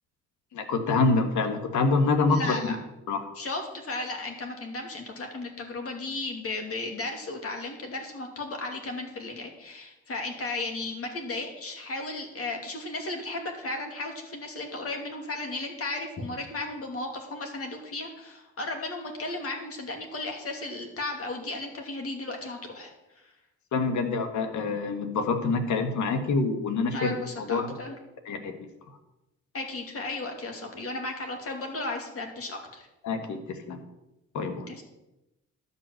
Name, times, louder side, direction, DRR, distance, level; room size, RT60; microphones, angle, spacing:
voice 1, 0.5-2.6 3.1-3.3 23.7-27.8 28.3-28.5 33.0-33.8 34.3-34.7, left 3 dB, 70° left, 7 dB, 1.6 m, -26 dB
voice 2, 2.3-2.8 3.4-23.3 26.9-28.0 29.5-32.8 34.7-34.8, left 2 dB, 50° left, 2 dB, 2.6 m, -35 dB
12.0 x 5.6 x 7.7 m, 0.95 s
cardioid pair, 90°, 30 cm